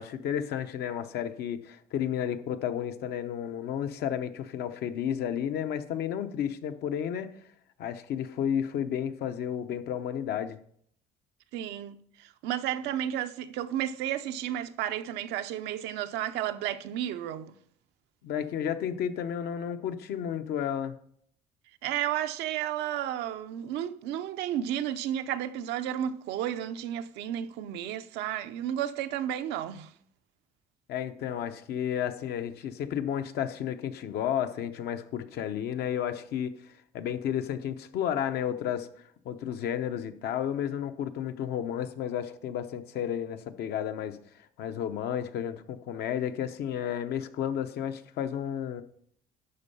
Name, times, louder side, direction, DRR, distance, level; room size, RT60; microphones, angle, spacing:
voice 1, 0.0-7.3 7.8-10.6 18.2-21.0 30.9-36.5 36.9-38.9 39.2-44.2 44.6-48.8, left 9 dB, 70° left, 0.8 m, -32 dB
voice 2, 11.5-17.5 21.8-29.9, right 11 dB, 90° right, 0.7 m, -32 dB
12.0 x 4.5 x 5.6 m
cardioid pair, 110°, 17 cm